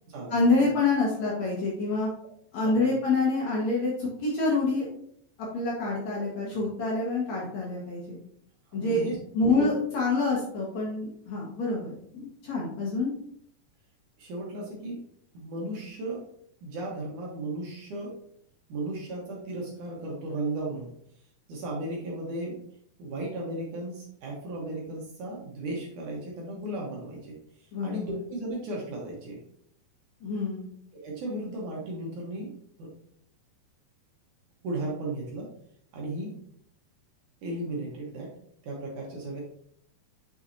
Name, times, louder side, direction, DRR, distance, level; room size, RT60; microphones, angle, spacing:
voice 1, 0.3-2.1 2.5-4.9 5.5-8.2 8.7-9.0 9.3-13.1 27.7-28.2 30.2-30.7, left 3 dB, 60° left, -4 dB, 2.0 m, -27 dB
voice 2, 2.6-2.9 8.7-9.2 9.5-9.7 14.2-15.0 15.3-16.3 16.6-18.2 18.7-20.9 21.5-22.6 23.0-27.4 27.8-29.4 30.9-32.5 32.8-32.9 34.6-35.5 35.9-36.3 37.4-38.3 38.6-39.4, right 1 dB, 70° right, -2 dB, 2.0 m, -35 dB
6.5 x 5.9 x 2.7 m, 0.67 s
omnidirectional pair, 4.9 m